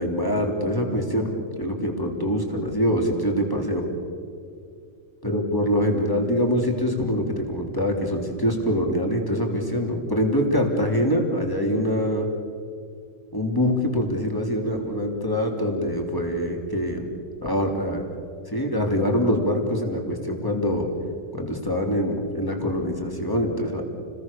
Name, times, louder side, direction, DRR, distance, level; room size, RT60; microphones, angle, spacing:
voice 1, 0.0-3.8 5.2-12.3 13.3-17.1 17.4-18.1 18.5-20.9 21.3-23.8, equal, 15° left, 1 dB, 3.5 m, -24 dB
30.0 x 20.5 x 7.0 m, 2.3 s
omnidirectional pair, 1.3 m